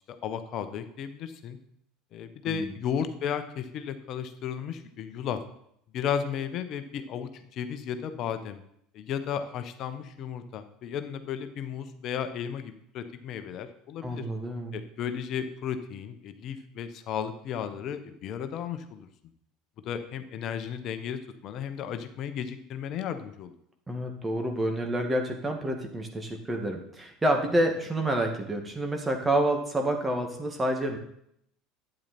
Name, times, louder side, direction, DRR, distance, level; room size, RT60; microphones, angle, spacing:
voice 1, 0.2-1.6 2.1-5.4 5.9-8.6 8.9-14.2 14.7-19.1 19.8-23.5, left 8 dB, 45° left, 9 dB, 1.1 m, -34 dB
voice 2, 14.0-14.8 23.9-31.0, right 1 dB, 15° right, 4 dB, 2.0 m, -28 dB
12.0 x 9.0 x 4.4 m, 0.73 s
figure-of-eight pair, 70°, 0 cm